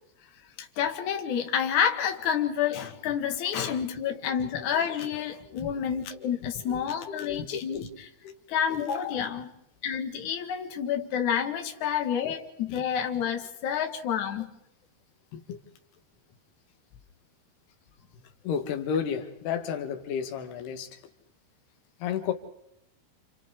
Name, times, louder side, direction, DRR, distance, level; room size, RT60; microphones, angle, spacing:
voice 1, 0.6-8.1 8.5-9.5 9.8-14.5, left 8 dB, 55° left, 2.9 m, -29 dB
voice 2, 6.7-7.5 8.3-8.4 12.2-12.3 12.7-12.8 15.3-15.6 18.4-21.0 22.0-22.3, left 7 dB, 90° left, 3.5 m, -32 dB
29.0 x 28.5 x 3.7 m
omnidirectional pair, 4.5 m